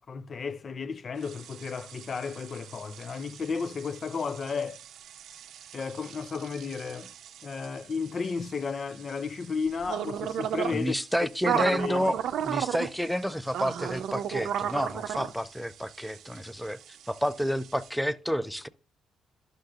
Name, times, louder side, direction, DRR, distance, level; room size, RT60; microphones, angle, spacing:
voice 1, 0.1-4.8 5.7-7.1 7.4-10.9 11.4-12.1 15.2-15.3, left 5 dB, 45° left, 0.5 m, -33 dB
sound 1, 1.2-17.9, right 9 dB, 75° right, 0.6 m, -36 dB
voice 2, 10.7-12.2 12.4-16.8 17.1-18.7, equal, ahead, 0.6 m, -30 dB
11.5 x 6.6 x 2.4 m
cardioid pair, 90°, 0 cm